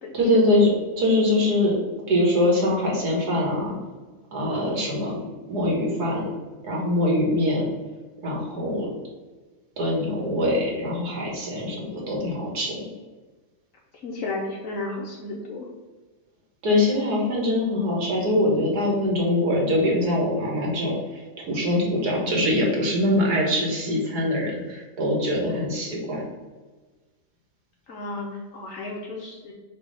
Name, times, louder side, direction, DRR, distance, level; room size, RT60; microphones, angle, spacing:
voice 1, 0.1-1.7 2.1-3.7 4.3-5.2 5.5-6.3 6.6-7.7 8.2-8.9 9.8-12.9 16.6-26.2, left 1 dB, 85° right, -1 dB, 2.0 m, -23 dB
voice 2, 14.0-15.7 27.9-29.5, left 2 dB, 60° left, -1 dB, 1.2 m, -33 dB
6.3 x 2.9 x 5.5 m, 1.3 s
omnidirectional pair, 1.6 m